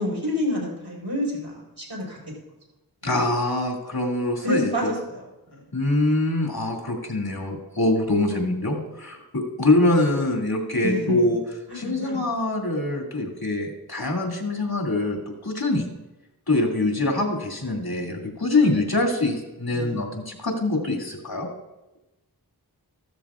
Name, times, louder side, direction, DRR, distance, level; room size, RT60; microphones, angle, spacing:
voice 1, 0.0-2.2 3.0-3.1 4.4-5.2 5.5-5.6 10.8-11.3 11.7-12.2 19.7-20.0, left 1 dB, 85° right, -3 dB, 4.8 m, -28 dB
voice 2, 3.0-4.9 5.7-11.4 11.7-15.9 16.5-21.5, left 2 dB, 70° left, -1 dB, 2.5 m, -24 dB
15.0 x 12.5 x 2.5 m, 0.97 s
wide cardioid pair, 40°, 38 cm